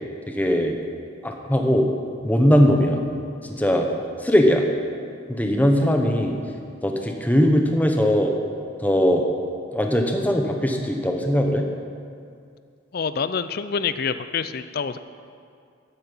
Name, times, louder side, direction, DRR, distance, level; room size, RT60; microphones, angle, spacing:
voice 1, 0.3-0.7 1.2-1.9 2.2-3.0 3.4-3.9 4.2-4.7 5.3-6.4 6.8-8.3 8.8-9.2 9.7-11.6, equal, 10° left, 3 dB, 0.9 m, -20 dB
voice 2, 12.9-15.0, left 6 dB, 50° left, 12 dB, 0.5 m, -26 dB
14.0 x 8.6 x 5.5 m, 2.3 s
head